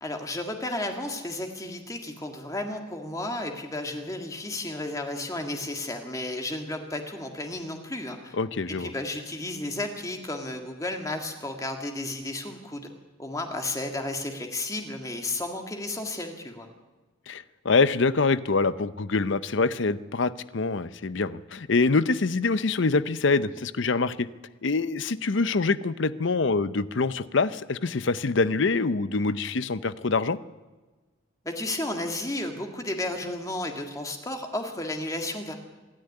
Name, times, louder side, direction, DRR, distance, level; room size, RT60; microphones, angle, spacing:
voice 1, 0.0-8.4 8.8-12.9 13.2-16.7 31.5-35.5, left 2 dB, 15° left, 4 dB, 1.8 m, -33 dB
voice 2, 8.4-8.9 17.3-24.3 24.6-30.4, left 3 dB, 65° left, 16 dB, 0.7 m, -25 dB
26.0 x 10.5 x 9.9 m, 1.2 s
head